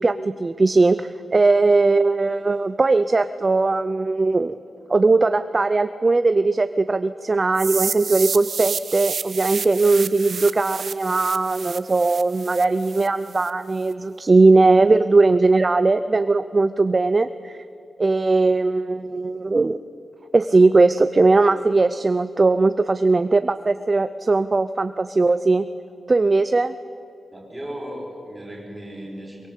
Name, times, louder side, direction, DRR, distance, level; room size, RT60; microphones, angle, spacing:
voice 1, 0.0-4.5 4.9-17.6 18.0-19.8 20.3-25.7 26.1-26.7, right 3 dB, 30° right, 11 dB, 0.5 m, -19 dB
sound 1, 7.6-13.5, right 6 dB, 55° right, 0.9 m, -30 dB
voice 2, 27.3-29.5, equal, 5° right, -3 dB, 6.0 m, -36 dB
23.0 x 23.0 x 8.3 m, 2.7 s
wide cardioid pair, 155°, 0 cm